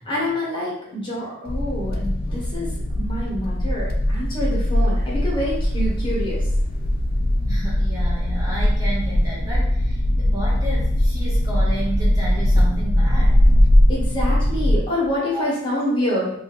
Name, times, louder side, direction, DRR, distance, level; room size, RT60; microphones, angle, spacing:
voice 1, 0.0-2.7 2.9-6.4 13.9-16.3, left 1 dB, 25° left, -6 dB, 1.0 m, -26 dB
sound 1, 1.5-14.8, left 1 dB, 50° left, 0.3 m, -20 dB
voice 2, 7.4-13.4 15.3-15.4, right 1 dB, 15° right, -8 dB, 0.7 m, -32 dB
2.7 x 2.5 x 2.9 m, 0.72 s
head